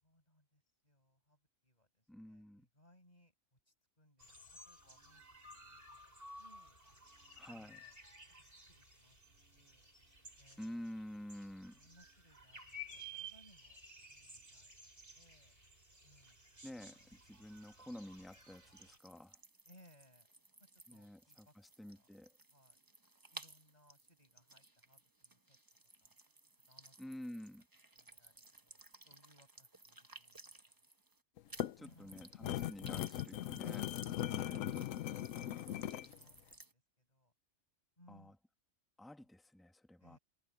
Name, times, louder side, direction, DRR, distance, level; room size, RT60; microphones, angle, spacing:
voice 1, 0.0-4.3 4.6-6.0 6.3-6.8 7.4-8.0 8.4-9.9 10.4-10.8 11.6-15.6 16.0-16.7 16.9-17.1 19.7-20.3 20.6-21.5 21.8-22.1 22.5-22.8 23.3-25.6 26.0-26.1 26.7-27.1 28.0-30.6 31.8-32.3 34.2-34.7 35.8-37.3 38.0-38.4 40.0-40.2, left 1 dB, 30° left, 5.8 m, -67 dB
voice 2, 2.1-2.7 7.4-7.8 10.6-11.8 16.6-19.4 20.9-22.4 27.0-27.7 31.8-33.9 38.1-38.4 39.0-40.2, left 1 dB, ahead, 1.2 m, -50 dB
sound 1, 4.2-19.0, equal, 45° right, 7.8 m, -55 dB
sound 2, 17.0-31.2 31.5-36.7, right 2 dB, 20° right, 1.0 m, -59 dB
sound 3, 31.4-36.1, left 12 dB, 85° left, 1.0 m, -39 dB
omnidirectional pair, 1.3 m